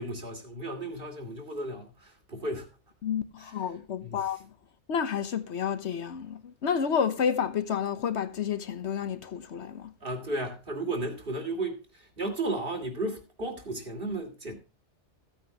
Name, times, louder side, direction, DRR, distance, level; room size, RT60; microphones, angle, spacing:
voice 1, 0.0-2.7 4.0-4.2 10.0-14.5, right 2 dB, 50° right, 2.9 m, -34 dB
voice 2, 3.0-4.5 4.9-9.9, left 7 dB, 75° left, 1.3 m, -30 dB
15.5 x 8.7 x 2.9 m
omnidirectional pair, 1.2 m